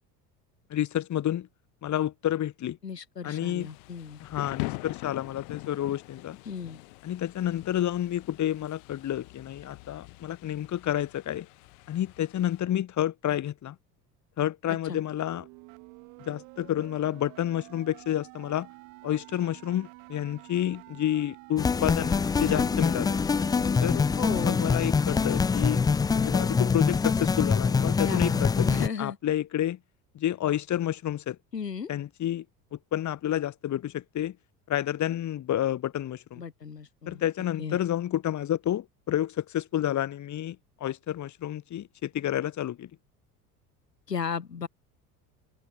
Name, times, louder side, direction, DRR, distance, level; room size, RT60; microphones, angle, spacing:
voice 1, 0.7-1.5 1.8-2.8 3.2-3.7 4.2-6.4 7.0-11.5 11.9-13.8 14.4-15.5 16.2-18.7 19.0-23.2 23.8-24.1 24.4-25.8 26.1-29.8 30.1-31.4 31.9-32.4 32.7-34.4 34.7-36.4 37.1-42.9, left 12 dB, 35° left, 2.0 m, -30 dB
voice 2, 2.8-4.2 6.5-6.8 14.7-15.0 22.5-22.7 24.2-24.6 28.1-29.2 31.5-31.9 36.4-37.2 37.6-37.8 44.1-44.7, left 6 dB, 85° left, 1.9 m, -35 dB
Thunder / Rain, 3.6-12.6, left 32 dB, 60° left, 6.8 m, -42 dB
sound 1, 15.1-25.1, right 32 dB, 60° right, 3.3 m, -49 dB
sound 2, 21.6-28.9, left 5 dB, 10° left, 0.4 m, -24 dB
open air
figure-of-eight pair, 65°, 48 cm